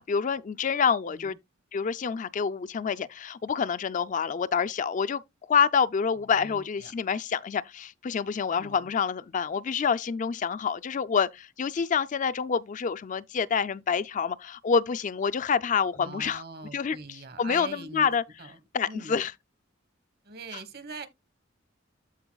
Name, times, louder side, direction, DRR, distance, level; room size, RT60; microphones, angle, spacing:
voice 1, 0.0-1.4 1.7-5.2 5.5-16.4 16.7-17.0 17.4-18.2 18.7-19.3, left 6 dB, 40° left, 0.4 m, -27 dB
voice 2, 6.2-6.9 8.5-8.9 15.9-18.1 18.4-18.6 18.9-19.2 20.2-21.1, right 3 dB, 55° right, 1.3 m, -42 dB
14.0 x 4.7 x 2.3 m
head